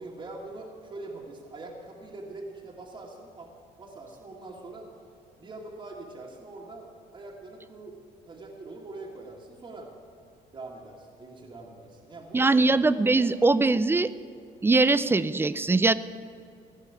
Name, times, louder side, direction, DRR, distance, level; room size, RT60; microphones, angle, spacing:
voice 1, 0.0-3.5 3.8-4.9 5.4-6.9 7.1-8.0 8.2-9.9 10.5-12.6 13.1-13.3, right 2 dB, 30° right, -2 dB, 1.6 m, -43 dB
voice 2, 12.3-14.1 14.6-15.9, right 3 dB, 15° right, 15 dB, 0.4 m, -21 dB
15.5 x 5.6 x 9.7 m, 2.4 s
cardioid pair, 110°, 17 cm